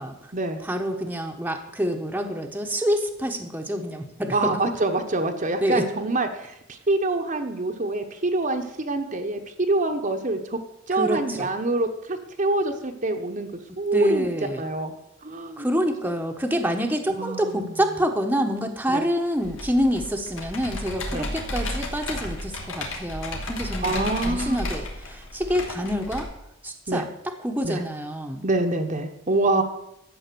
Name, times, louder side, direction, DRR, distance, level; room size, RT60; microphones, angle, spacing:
voice 1, 0.6-4.6 5.6-5.8 10.9-11.5 13.9-14.7 15.6-26.3 26.6-28.4, equal, 10° right, 3 dB, 1.1 m, -27 dB
voice 2, 4.3-9.4 9.7-10.6 10.9-13.5 13.8-14.3 14.6-14.9 15.2-15.7 17.1-17.8 18.9-19.0 21.1-21.3 23.8-24.6 26.9-27.1 27.6-27.8 28.4-29.6, right 2 dB, 40° right, 5 dB, 1.1 m, -26 dB
Computer keyboard, 19.4-26.2, left 1 dB, 90° left, 2.9 m, -33 dB
13.0 x 8.5 x 6.9 m, 0.85 s
head